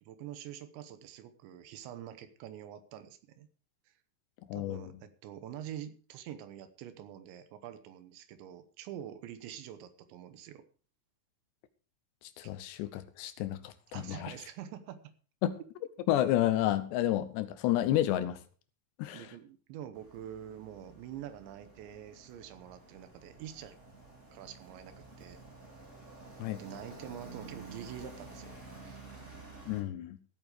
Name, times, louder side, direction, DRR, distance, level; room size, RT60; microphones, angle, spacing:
voice 1, 0.0-3.5 3.9-4.0 4.5-10.7 13.9-15.1 19.1-23.8 24.3-25.4 26.5-28.6 28.8-29.0, right 10 dB, 75° right, 11 dB, 3.2 m, -46 dB
voice 2, 4.5-4.9 12.4-14.3 15.4-15.5 16.1-18.4 19.0-19.3 26.4-26.6 29.7-30.2, left 13 dB, 80° left, 12 dB, 2.8 m, -30 dB
sound 1, 20.0-29.8, right 3 dB, 15° right, 4.0 m, -51 dB
15.5 x 8.9 x 4.9 m, 0.38 s
omnidirectional pair, 5.4 m